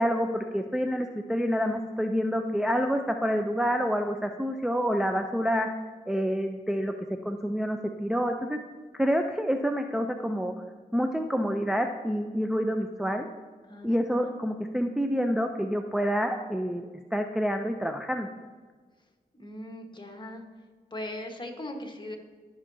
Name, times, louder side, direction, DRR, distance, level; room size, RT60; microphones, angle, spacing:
voice 1, 0.0-5.7 6.1-6.9 7.2-8.6 8.9-10.5 10.9-13.3 13.8-18.3, equal, 5° right, 4 dB, 0.5 m, -28 dB
voice 2, 13.7-14.3 19.3-20.4 20.9-22.2, left 1 dB, 25° left, 3 dB, 1.4 m, -39 dB
12.5 x 5.6 x 2.7 m, 1.5 s
cardioid pair, 50°, 17 cm